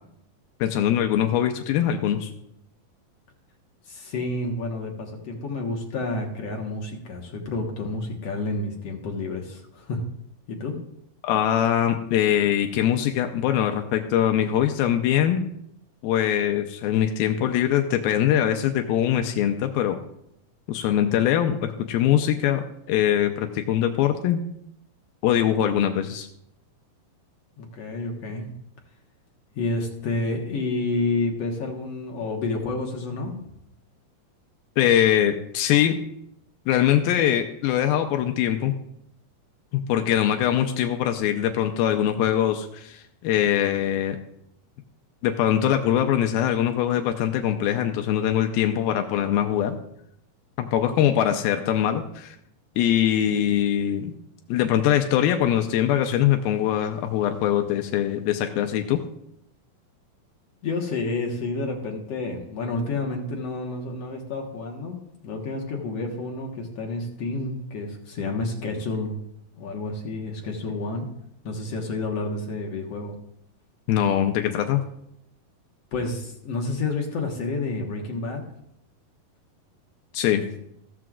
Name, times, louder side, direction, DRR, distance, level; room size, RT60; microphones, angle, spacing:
voice 1, 0.6-2.3 11.2-15.4 16.0-20.0 20.7-24.4 25.2-26.3 34.8-36.0 36.7-38.7 39.7-44.2 45.2-49.8 50.6-52.4 52.8-54.1 54.5-59.0 73.9-74.8 80.1-80.4, left 10 dB, 80° left, 5 dB, 2.5 m, -22 dB
voice 2, 3.9-10.0 10.5-10.7 27.6-28.5 29.6-33.4 50.8-51.1 60.6-69.2 69.6-71.1 71.4-73.1 75.9-78.4 80.3-80.4, left 3 dB, 60° left, 1 dB, 1.8 m, -30 dB
15.0 x 14.0 x 2.5 m, 0.77 s
omnidirectional pair, 4.4 m